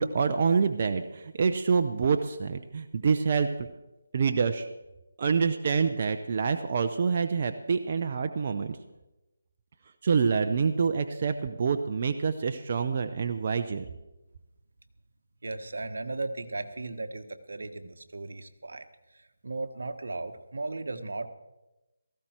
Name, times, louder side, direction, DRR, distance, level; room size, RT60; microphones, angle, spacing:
voice 1, 0.0-3.7 4.1-4.7 5.2-8.8 10.0-13.8, right 5 dB, 40° right, 7 dB, 0.8 m, -26 dB
voice 2, 15.4-18.8 19.1-21.3, right 2 dB, 70° right, 7 dB, 1.5 m, -36 dB
17.5 x 15.5 x 4.5 m, 1.0 s
figure-of-eight pair, 160°, 0 cm